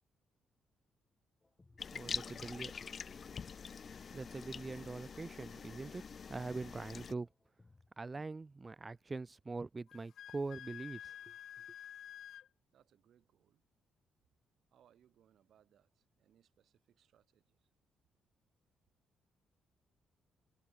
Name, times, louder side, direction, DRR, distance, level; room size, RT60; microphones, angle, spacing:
sound 1, 1.4-8.4, left 3 dB, 20° left, 1.6 m, -67 dB
sound 2, 1.8-7.1, left 6 dB, 45° left, 0.6 m, -45 dB
voice 1, 1.9-2.9 4.1-7.3 8.0-11.3, right 3 dB, 25° right, 0.5 m, -43 dB
Wind instrument woodwind instrument, 9.9-12.5, left 10 dB, 70° left, 0.9 m, -50 dB
voice 2, 11.4-12.3 12.7-13.6 14.7-17.7, right 10 dB, 70° right, 3.3 m, -71 dB
cardioid pair, 90°, 0 cm